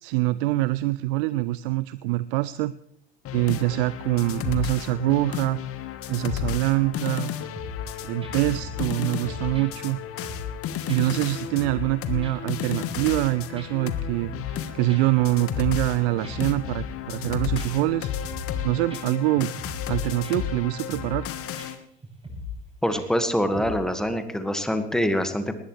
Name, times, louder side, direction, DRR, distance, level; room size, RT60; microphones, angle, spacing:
voice 1, 0.0-2.7 3.3-5.6 6.1-7.3 8.0-10.0 10.9-18.1 18.6-19.5 19.9-21.5, right 18 dB, 55° right, 17 dB, 0.5 m, -25 dB
sound 1, 3.2-21.8, left 9 dB, 40° left, 1.4 m, -33 dB
sound 2, 7.5-7.9 8.2-8.9 9.2-10.6 10.9-11.0 11.3-11.9 12.2-13.3 13.6-13.7 14.0-14.6 14.9-15.9 16.2-17.9 18.2-18.6 18.9-19.0 19.4-19.9 20.2-20.6 20.9-21.3 21.6-21.7 22.0-22.6 22.9-23.2 23.6-23.7, left 4 dB, 15° right, 7.3 m, -37 dB
voice 2, 22.8-25.5, equal, ahead, 8 dB, 1.8 m, -25 dB
19.5 x 19.5 x 3.3 m, 0.72 s
figure-of-eight pair, 65°, 33 cm